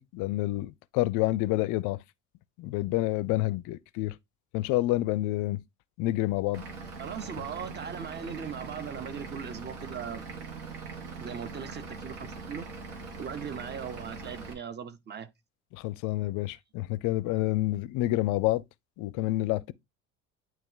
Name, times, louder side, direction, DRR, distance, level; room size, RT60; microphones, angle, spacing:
voice 1, 0.0-2.0 2.6-4.1 4.5-5.6 6.0-6.6 15.7-18.6 19.0-19.7, left 17 dB, 50° left, 0.5 m, -28 dB
Vehicle / Engine, 6.5-14.5, right 4 dB, 70° right, 1.7 m, -41 dB
voice 2, 7.0-10.2 11.2-12.7 13.2-15.3, right 7 dB, 25° right, 0.8 m, -39 dB
9.0 x 3.0 x 3.7 m
figure-of-eight pair, 55°, 40 cm